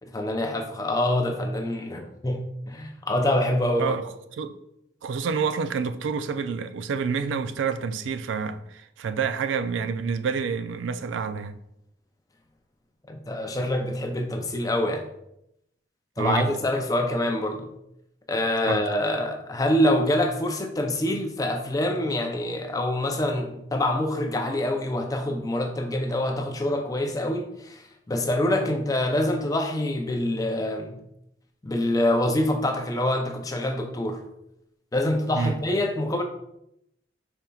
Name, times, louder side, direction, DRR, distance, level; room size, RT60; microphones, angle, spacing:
voice 1, 0.0-4.0 13.1-15.1 16.2-17.7 18.3-31.0 31.6-34.2 34.9-36.2, left 1 dB, 20° left, 0.5 m, -25 dB
voice 2, 5.0-11.5 16.2-16.5 18.7-18.8 35.3-35.6, right 5 dB, 90° right, 0.4 m, -28 dB
5.2 x 4.3 x 2.3 m
head